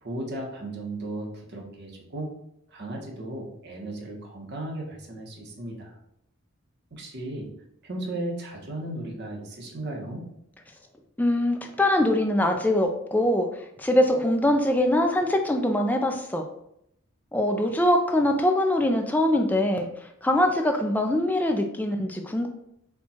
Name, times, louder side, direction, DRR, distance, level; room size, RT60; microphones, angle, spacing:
voice 1, 0.0-2.3 2.7-6.0 6.9-7.5 7.8-10.2, right 1 dB, 50° right, 0 dB, 1.0 m, -35 dB
voice 2, 11.2-13.5 13.8-16.4 17.3-19.9 20.2-22.5, left 1 dB, 10° left, 4 dB, 0.4 m, -23 dB
4.4 x 2.3 x 4.1 m, 0.77 s
head